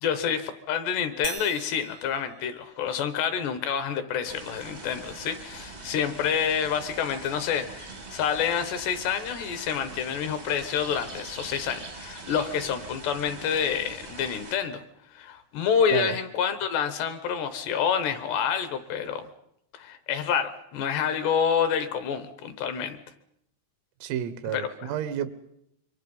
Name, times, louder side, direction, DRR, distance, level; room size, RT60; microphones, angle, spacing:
voice 1, 0.0-14.8 15.1-19.2 19.7-23.0 24.5-24.9, left 7 dB, 70° left, 10 dB, 3.0 m, -28 dB
sound 1, 1.2-3.2, right 11 dB, 70° right, 2.0 m, -42 dB
sound 2, 4.2-14.5, right 3 dB, 50° right, 0.7 m, -42 dB
voice 2, 24.0-25.3, right 10 dB, 85° right, 12 dB, 4.0 m, -30 dB
27.0 x 24.0 x 5.5 m, 0.76 s
omnidirectional pair, 5.8 m